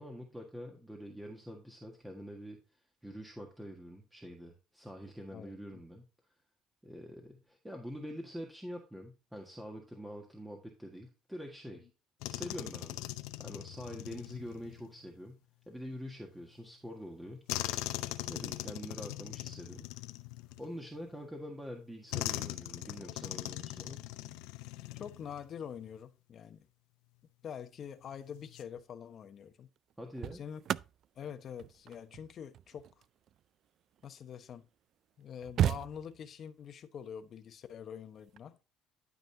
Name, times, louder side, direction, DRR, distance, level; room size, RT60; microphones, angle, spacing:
voice 1, 0.0-2.6 3.0-6.0 6.8-11.9 12.3-13.1 13.4-17.5 18.3-19.9 20.6-24.1 30.0-30.4, equal, 5° right, 1.6 m, -45 dB
voice 2, 5.3-5.8 25.0-26.7 27.4-29.7 30.3-30.6 31.2-32.9 34.0-34.7 35.2-38.6, left 8 dB, 45° left, 1.0 m, -45 dB
sound 1, 12.2-14.9 17.5-21.0 22.1-25.5 25.8-26.0 28.3-28.6, left 17 dB, 85° left, 0.7 m, -40 dB
sound 2, 28.6-28.9 29.8-34.4 34.9-35.0 35.2-36.5 38.1-38.4, right 10 dB, 55° right, 0.3 m, -36 dB
12.0 x 5.4 x 2.7 m
cardioid pair, 110°, 0 cm